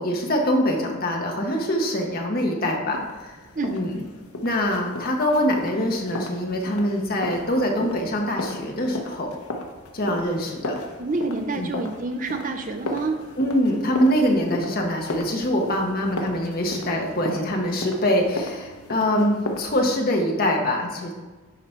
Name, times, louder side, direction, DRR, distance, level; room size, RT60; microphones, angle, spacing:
voice 1, 0.0-3.4 3.7-4.0 4.4-9.3 9.9-10.8 11.6-11.7 13.4-21.1, equal, 40° left, 1 dB, 1.1 m, -24 dB
sound 1, 2.9-19.6, left 1 dB, 80° left, 0.9 m, -36 dB
voice 2, 11.0-13.2, right 3 dB, 35° right, 5 dB, 0.7 m, -27 dB
10.0 x 4.1 x 4.5 m, 1.3 s
head